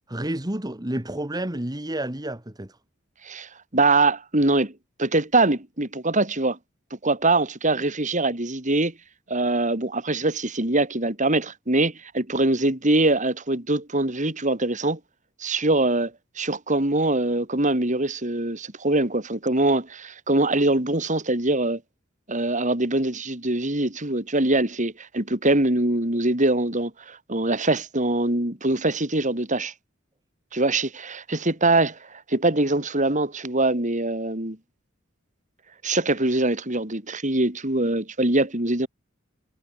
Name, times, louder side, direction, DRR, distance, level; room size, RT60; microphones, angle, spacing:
voice 1, 0.1-2.7, right 1 dB, 20° right, 1.8 m, -30 dB
voice 2, 3.2-4.7 5.0-6.6 7.0-8.9 9.3-15.0 15.4-16.1 16.4-21.8 22.3-29.7 30.5-34.6 35.8-38.9, right 2 dB, 40° right, 3.8 m, -23 dB
head